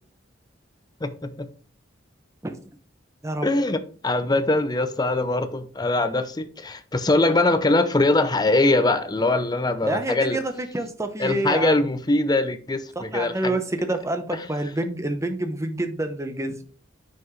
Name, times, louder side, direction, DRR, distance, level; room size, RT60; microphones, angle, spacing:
voice 1, 1.0-1.5 3.4-10.4 11.2-13.6, left 2 dB, 20° left, 0.6 m, -22 dB
voice 2, 9.8-11.9 13.0-16.6, right 1 dB, 15° right, 0.8 m, -27 dB
7.6 x 5.9 x 3.2 m
head